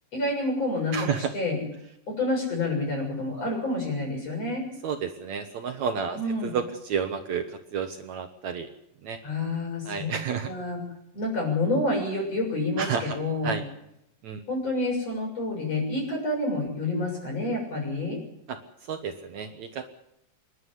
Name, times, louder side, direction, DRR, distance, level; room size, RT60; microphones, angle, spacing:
voice 1, 0.1-1.6 2.1-4.6 6.1-6.6 9.2-10.1 10.4-10.8 11.1-13.5 14.5-18.2, left 2 dB, 45° left, 1 dB, 8.0 m, -28 dB
voice 2, 4.8-7.4 7.7-8.7 9.0-9.2 9.9-10.5 12.8-13.0 13.4-13.6 14.2-14.4 18.5-18.6 18.9-19.9, right 6 dB, 60° right, 6 dB, 2.3 m, -30 dB
27.0 x 11.5 x 9.9 m, 0.79 s
omnidirectional pair, 4.0 m